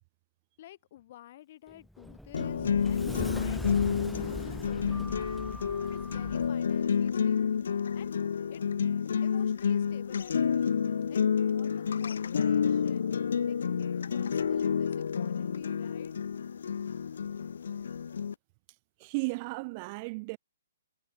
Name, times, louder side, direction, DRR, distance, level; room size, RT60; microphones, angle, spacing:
voice 1, 0.6-5.1 5.9-8.2 8.5-8.6 9.2-10.7 11.1-16.1, left 13 dB, 45° left, 5.0 m, -52 dB
Sliding door, 1.7-6.5, equal, ahead, 1.8 m, -40 dB
sound 1, 2.3-18.3, left 7 dB, 75° left, 0.6 m, -29 dB
voice 2, 19.0-20.4, right 28 dB, 30° right, 0.4 m, -34 dB
hypercardioid pair, 160°, 0 cm